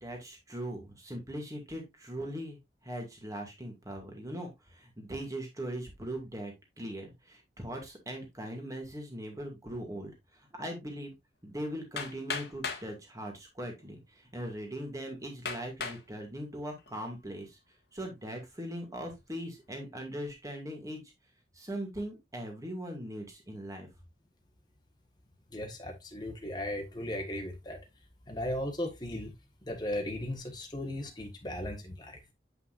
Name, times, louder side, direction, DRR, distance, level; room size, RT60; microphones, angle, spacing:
voice 1, 0.0-11.2 11.4-17.6 17.9-21.0 21.5-23.9, right 1 dB, 20° right, 2.1 m, -40 dB
Hammer, 12.0-12.9 13.8-13.9 14.5-14.6 15.4-16.0 16.6-17.1, left 5 dB, 60° left, 1.4 m, -37 dB
voice 2, 25.5-27.8 28.3-29.3 29.6-32.2, left 1 dB, 25° left, 1.5 m, -36 dB
8.0 x 5.6 x 2.5 m
head